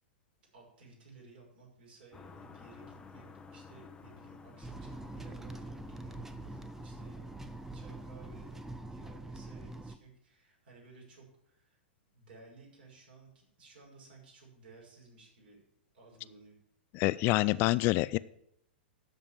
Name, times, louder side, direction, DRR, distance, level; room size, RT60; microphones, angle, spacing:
voice 1, 0.5-7.2 7.7-11.8 12.1-15.6 15.9-16.6, right 3 dB, 60° right, -2 dB, 5.8 m, -57 dB
sound 1, 2.1-8.7, left 5 dB, 15° left, 1.0 m, -53 dB
sound 2, 4.6-10.0, right 2 dB, 5° right, 0.7 m, -44 dB
voice 2, 16.9-18.2, left 20 dB, 40° left, 18 dB, 0.3 m, -27 dB
13.0 x 5.2 x 7.7 m, 0.75 s
figure-of-eight pair, 105°, 6 cm